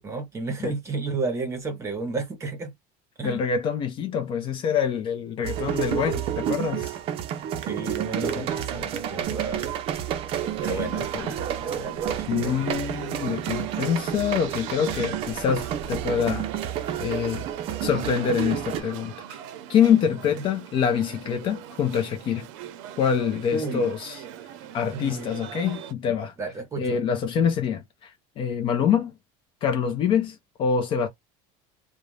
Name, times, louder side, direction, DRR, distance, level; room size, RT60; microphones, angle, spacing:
voice 1, 0.0-2.7 3.2-3.4 7.6-10.1 10.5-11.1 11.6-12.6 20.4-20.5 23.5-23.9 24.9-25.5 26.4-27.0, right 4 dB, 20° right, 0.9 m, -32 dB
voice 2, 3.2-7.0 8.3-8.5 10.7-11.3 12.3-16.5 17.0-17.5 17.8-19.4 19.7-22.5 23.0-24.2 24.7-26.3 26.8-29.1 29.6-31.1, left 7 dB, 35° left, 0.4 m, -25 dB
sound 1, 5.4-18.8, right 10 dB, 40° right, 0.5 m, -30 dB
sound 2, 10.3-25.9, right 11 dB, 90° right, 0.6 m, -40 dB
2.5 x 2.1 x 3.1 m
cardioid pair, 165°, 15 cm